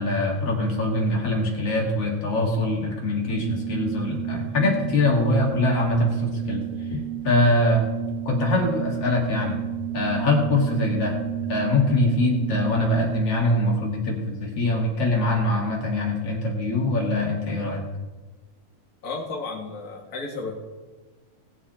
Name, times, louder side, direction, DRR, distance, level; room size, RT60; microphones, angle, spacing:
voice 1, 0.0-6.6 6.9-7.0 7.2-7.8 8.3-9.6 9.9-11.1 11.5-17.8, left 2 dB, 55° left, -1 dB, 3.1 m, -23 dB
Organ, 3.2-13.5, right 16 dB, 65° right, 1.5 m, -32 dB
voice 2, 19.0-20.6, left 3 dB, 35° left, -1 dB, 2.0 m, -33 dB
19.0 x 8.5 x 4.3 m, 1.3 s
omnidirectional pair, 3.3 m